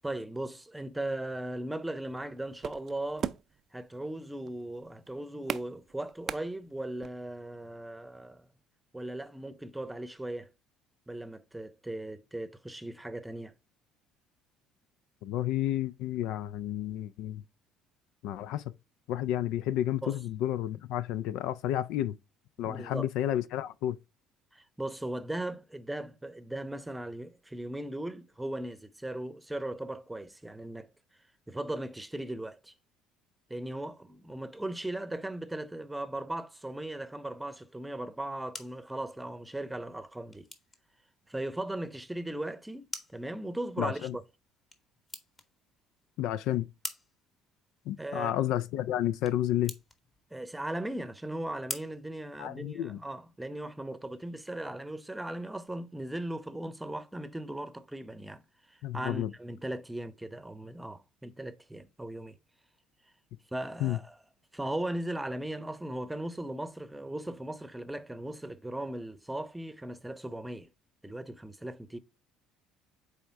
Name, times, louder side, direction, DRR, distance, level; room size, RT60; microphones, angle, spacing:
voice 1, 0.0-3.3 3.7-8.5 8.9-10.5 11.1-13.5 20.0-20.2 22.6-23.1 24.5-30.9 31.5-32.7 33.5-40.5 41.3-44.2 48.0-48.4 50.3-58.4 58.7-62.4 63.5-64.2 64.5-70.7 71.0-72.0, right 1 dB, 10° right, 0.8 m, -38 dB
sound 1, 2.0-7.1, right 8 dB, 50° right, 0.4 m, -39 dB
voice 2, 15.2-17.4 18.2-18.6 19.1-22.2 22.6-24.0 43.8-44.2 46.2-46.7 47.9-49.7 52.4-53.0 58.8-59.3 63.8-64.0, left 12 dB, 65° left, 0.3 m, -31 dB
sound 2, 38.1-53.0, left 3 dB, 30° left, 1.4 m, -48 dB
8.5 x 3.5 x 3.5 m
hypercardioid pair, 60°, 0 cm